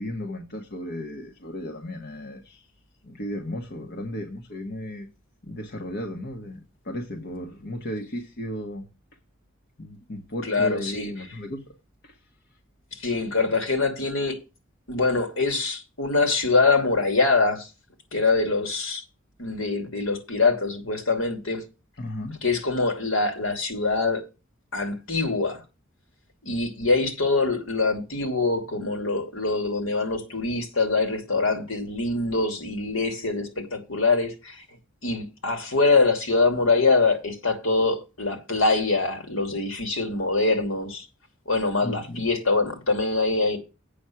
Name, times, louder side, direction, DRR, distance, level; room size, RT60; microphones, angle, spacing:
voice 1, 0.0-2.6 3.1-5.1 5.4-6.6 6.8-8.8 9.8-11.6 22.0-22.3 41.8-42.2, equal, 55° left, 1.5 m, -34 dB
voice 2, 10.4-11.1 13.0-14.4 14.9-17.7 18.1-19.0 19.4-21.6 22.4-24.2 24.7-25.6 26.4-34.6 35.0-41.1 41.5-43.6, left 3 dB, 80° left, 2.6 m, -24 dB
8.5 x 6.3 x 5.7 m
head